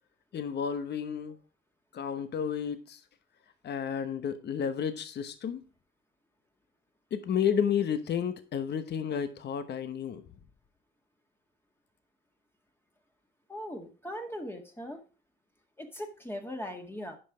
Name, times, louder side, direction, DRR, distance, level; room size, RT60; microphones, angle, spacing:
voice 1, 0.3-1.4 1.9-3.0 3.6-5.6 7.1-10.2, left 7 dB, 60° left, 1.0 m, -31 dB
voice 2, 13.5-15.0 15.8-17.2, equal, 10° left, 1.8 m, -39 dB
10.0 x 5.6 x 4.9 m
cardioid pair, 90°, 20 cm